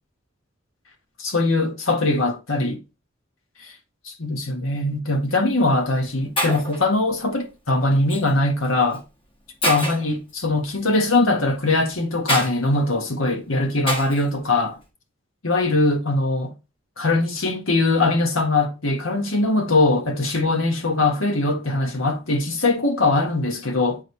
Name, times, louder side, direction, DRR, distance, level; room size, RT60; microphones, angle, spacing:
voice 1, 1.2-2.8 4.0-9.0 9.6-14.8 15.4-16.5 17.0-24.0, left 2 dB, 85° left, 1.7 m, -21 dB
Shatter, 5.1-5.3 6.0-6.1 6.4-6.8 8.1-8.3 8.9-9.0 9.6-10.1 12.3-12.5 13.9-14.2, equal, 25° left, 1.5 m, -25 dB
9.0 x 3.9 x 3.3 m
head